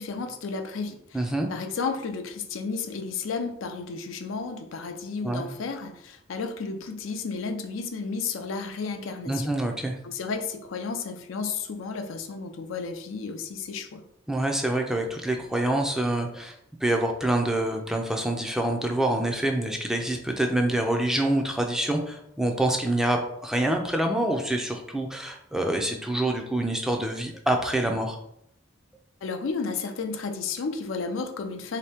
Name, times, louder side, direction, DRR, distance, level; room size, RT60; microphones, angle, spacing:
voice 1, 0.0-9.5 10.0-14.0 29.2-31.8, left 4 dB, 90° left, 6 dB, 0.5 m, -32 dB
voice 2, 1.1-1.5 5.2-5.5 9.3-10.0 14.3-16.6 16.8-28.2, right 1 dB, 5° right, 2 dB, 0.4 m, -26 dB
3.1 x 2.8 x 3.4 m, 0.74 s
head